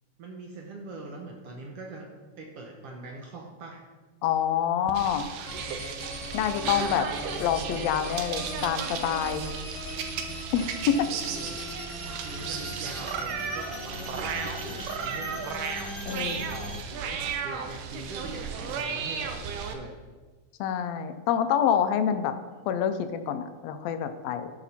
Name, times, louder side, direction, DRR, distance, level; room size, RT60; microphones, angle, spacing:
voice 1, 0.2-2.1 2.4-3.8 11.1-11.6 12.1-14.1 14.3-15.4 16.1-19.9, right 2 dB, 65° right, 0 dB, 1.6 m, -42 dB
voice 2, 4.2-5.3 6.3-7.1 7.4-9.5 10.5-11.1 16.1-16.4 20.6-22.3 22.7-24.5, left 9 dB, 80° left, 9 dB, 1.5 m, -27 dB
sound 1, 4.9-19.7, right 6 dB, 85° right, 2.3 m, -35 dB
sound 2, 5.5-16.8, left 1 dB, 25° left, 0.9 m, -39 dB
12.5 x 5.1 x 4.2 m, 1.3 s
omnidirectional pair, 3.6 m